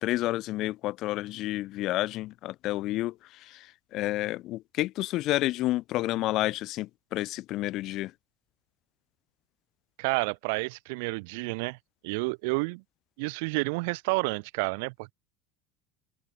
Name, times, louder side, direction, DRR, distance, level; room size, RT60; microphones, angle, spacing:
voice 1, 0.0-8.1, left 16 dB, 45° left, 1.7 m, -30 dB
voice 2, 10.0-11.8 12.0-12.8 13.2-15.1, right 29 dB, 75° right, 2.4 m, -30 dB
open air
cardioid pair, 160°, 0 cm